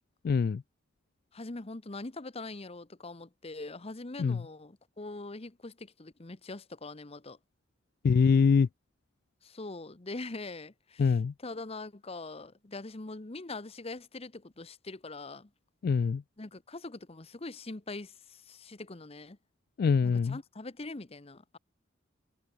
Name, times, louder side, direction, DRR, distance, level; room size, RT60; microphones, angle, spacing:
voice 1, 0.2-0.6 4.2-4.4 8.0-8.7 11.0-11.3 15.8-16.2 19.8-20.4, left 5 dB, 50° left, 0.3 m, -24 dB
voice 2, 1.3-7.4 9.4-15.5 16.4-19.4 20.0-21.6, left 2 dB, 30° left, 1.0 m, -43 dB
head